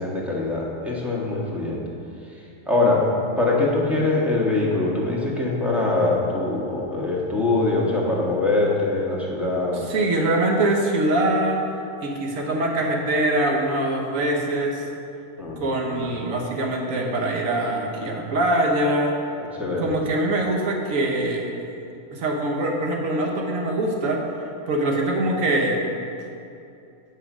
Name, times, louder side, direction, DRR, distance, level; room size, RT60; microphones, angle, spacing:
voice 1, 0.0-1.8 2.7-3.1 3.4-9.8 15.4-15.9 19.4-19.8, left 2 dB, ahead, -5 dB, 1.4 m, -23 dB
voice 2, 9.9-11.6 12.0-14.8 15.6-19.1 19.8-21.5 22.1-24.2 24.7-25.8, right 1 dB, 75° right, 0 dB, 1.3 m, -23 dB
7.5 x 5.8 x 6.0 m, 2.7 s
omnidirectional pair, 1.4 m